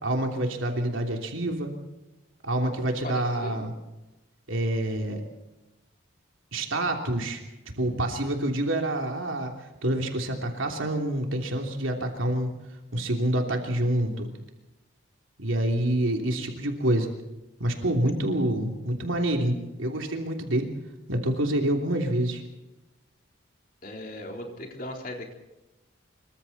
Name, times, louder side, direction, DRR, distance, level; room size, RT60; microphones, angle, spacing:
voice 1, 0.0-1.7 2.4-3.7 4.5-5.2 6.5-7.4 7.8-12.5 12.9-14.3 15.4-17.1 17.6-20.7 21.1-22.4, right 1 dB, 80° right, 2 dB, 3.1 m, -27 dB
voice 2, 3.0-3.7 23.8-25.3, left 1 dB, 45° left, 2 dB, 3.8 m, -38 dB
26.5 x 24.0 x 4.2 m, 1.0 s
head